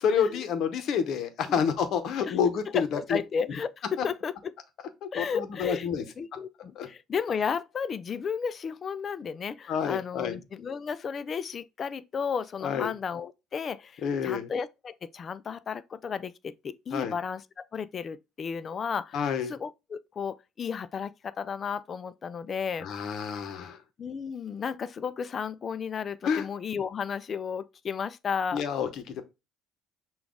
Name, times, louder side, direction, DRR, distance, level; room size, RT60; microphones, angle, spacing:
voice 1, 0.0-3.2 4.0-4.1 5.0-6.0 6.8-6.9 9.7-10.4 12.6-12.9 14.0-14.5 16.9-17.1 19.1-19.5 22.8-23.8 26.2-26.5 28.5-29.2, left 7 dB, 60° left, 0.8 m, -28 dB
voice 2, 2.7-4.5 5.1-5.9 6.2-22.9 24.0-28.6, left 6 dB, 35° left, 0.3 m, -33 dB
5.9 x 2.3 x 3.6 m
cardioid pair, 115°, 0 cm